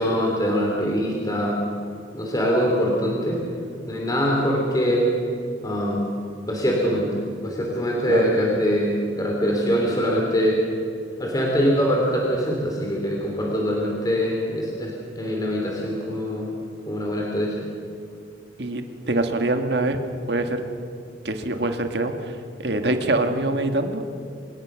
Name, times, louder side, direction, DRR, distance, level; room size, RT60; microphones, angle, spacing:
voice 1, 0.0-1.6 2.1-3.4 3.9-5.1 5.6-6.0 6.4-10.6 11.2-16.5 16.9-17.6, equal, 20° left, -1 dB, 3.3 m, -23 dB
voice 2, 18.6-20.0 20.3-20.6 21.2-24.0, right 2 dB, 60° right, 6 dB, 1.7 m, -24 dB
25.0 x 20.0 x 6.3 m, 2.4 s
head